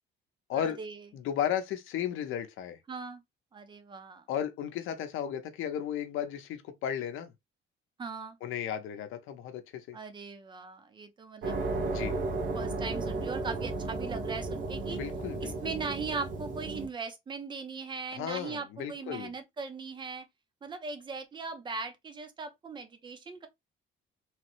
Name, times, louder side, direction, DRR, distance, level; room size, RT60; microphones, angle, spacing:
voice 1, 0.5-1.1 2.9-3.2 3.5-4.2 8.0-8.4 9.9-11.6 12.5-15.0 15.4-20.3 20.6-23.5, right 4 dB, 25° right, 0.5 m, -39 dB
voice 2, 1.1-2.8 4.3-7.3 8.4-10.0 11.9-12.2 14.9-15.8 18.1-19.3, left 9 dB, 80° left, 0.7 m, -34 dB
sound 1, 11.4-16.9, right 3 dB, 65° right, 1.0 m, -34 dB
3.1 x 2.0 x 2.9 m
cardioid pair, 165°, 20 cm